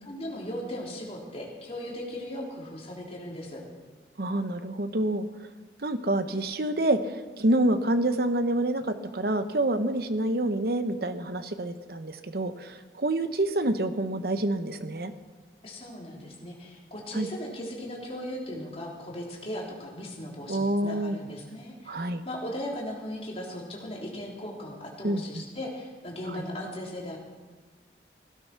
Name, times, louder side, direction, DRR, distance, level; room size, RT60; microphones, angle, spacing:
voice 1, 0.0-3.6 15.6-27.2, left 1 dB, 35° left, -2 dB, 3.4 m, -38 dB
voice 2, 4.2-5.3 5.8-15.1 17.1-17.3 20.5-21.2 21.9-22.2 25.0-25.4, right 1 dB, 60° right, 10 dB, 1.0 m, -27 dB
16.5 x 12.5 x 6.0 m, 1.4 s
head